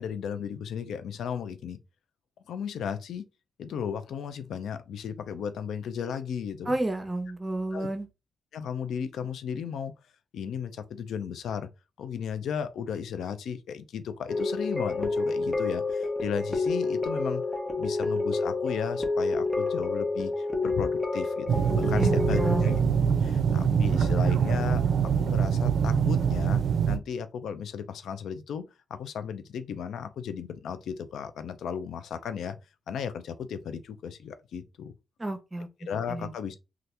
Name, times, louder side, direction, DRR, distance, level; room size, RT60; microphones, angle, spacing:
voice 1, 0.0-1.8 2.5-3.3 3.6-6.8 7.7-7.9 8.5-9.9 10.3-11.7 12.0-17.4 17.8-22.8 23.2-26.6 26.9-32.6 32.9-34.9 35.8-36.6, left 7 dB, 90° left, 0.4 m, -35 dB
voice 2, 6.7-8.1 22.0-22.7 35.2-35.7 36.1-36.3, right 1 dB, 25° right, 0.7 m, -31 dB
sound 1, 14.3-22.8, left 3 dB, 20° left, 0.9 m, -29 dB
sound 2, 21.5-27.0, right 7 dB, 75° right, 0.4 m, -24 dB
2.7 x 2.4 x 3.3 m
cardioid pair, 75°, 0 cm